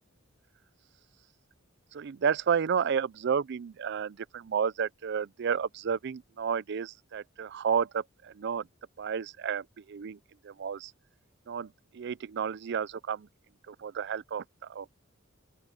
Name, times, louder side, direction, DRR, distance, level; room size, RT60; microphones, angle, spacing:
voice 1, 1.9-8.7 9.0-10.2 10.4-10.9 11.5-13.3 13.7-14.4 14.7-14.9, right 7 dB, 60° right, 0.4 m, -31 dB
open air
head